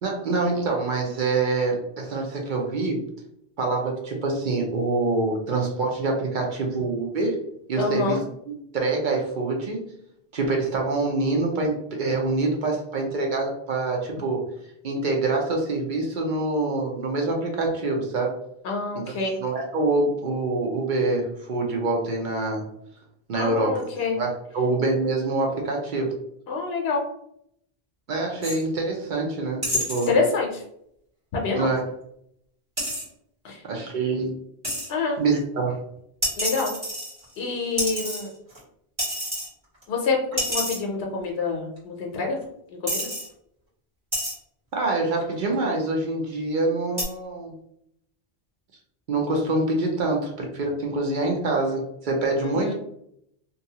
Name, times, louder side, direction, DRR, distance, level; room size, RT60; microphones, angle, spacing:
voice 1, 0.0-3.0 3.6-7.4 7.7-8.2 8.5-9.8 10.3-14.4 14.8-18.4 18.9-19.0 19.4-22.7 23.3-23.8 24.1-26.2 28.1-30.1 31.5-31.8 33.7-34.4 35.2-35.8 44.7-47.5 49.1-52.7, right 3 dB, 55° right, 1 dB, 0.7 m, -25 dB
voice 2, 7.8-8.2 18.6-19.4 23.3-24.2 26.5-27.1 30.1-30.6 31.3-31.7 33.4-33.6 34.9-35.2 36.4-36.7 37.4-38.3 39.9-42.4 42.7-43.1 52.4-52.7, left 4 dB, 75° left, 0 dB, 0.8 m, -26 dB
sound 1, 28.4-28.6 29.6-30.1 32.8-33.0 34.6-34.9 36.2-37.4 37.8-38.6 39.0-39.5 39.8-39.9 40.4-40.8 41.8-41.9 42.4-42.5 42.9-43.3 44.1-44.3 45.2-45.5 47.0-47.1, equal, 25° right, 1.5 m, -28 dB
2.6 x 2.3 x 2.7 m, 0.73 s
omnidirectional pair, 1.1 m